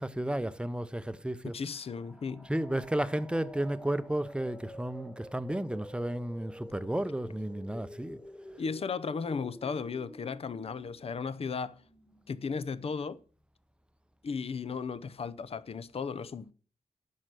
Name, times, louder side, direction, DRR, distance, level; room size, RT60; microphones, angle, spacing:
voice 1, 0.0-1.6 2.5-8.2, right 1 dB, 10° right, 0.7 m, -33 dB
voice 2, 1.4-2.5 8.6-11.8 12.3-13.2 14.2-16.5, left 5 dB, 50° left, 0.6 m, -35 dB
sound 1, 1.6-13.2, left 1 dB, 15° left, 1.6 m, -49 dB
9.8 x 6.3 x 7.6 m
wide cardioid pair, 90°, 13 cm